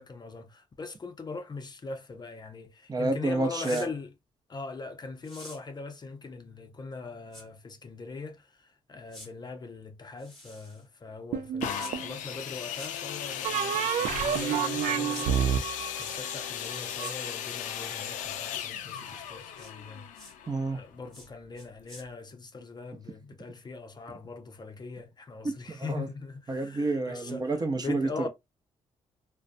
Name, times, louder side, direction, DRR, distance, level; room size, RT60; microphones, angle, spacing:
voice 1, 0.0-4.1 4.5-8.5 8.9-20.1 20.6-27.5 27.8-28.3, left 4 dB, 35° left, 0.5 m, -41 dB
voice 2, 2.9-3.9 20.5-20.8 25.4-26.1 26.5-28.3, right 2 dB, 30° right, 0.7 m, -29 dB
sound 1, 3.5-3.9 5.2-5.6 7.3-7.4 9.1-9.3 10.2-10.8 11.8-11.9 12.7-12.9 14.3-14.5 15.1-15.3 15.9-16.4 17.0-17.2 19.6-19.7 20.1-20.3 21.1-21.3 21.6-22.0, left 1 dB, 5° left, 1.1 m, -47 dB
sound 2, 11.3-12.2 13.4-17.1, right 9 dB, 75° right, 0.4 m, -29 dB
sound 3, 11.6-21.3 22.0-22.1, left 9 dB, 80° left, 0.4 m, -37 dB
2.4 x 2.1 x 2.5 m
supercardioid pair, 65°, 13 cm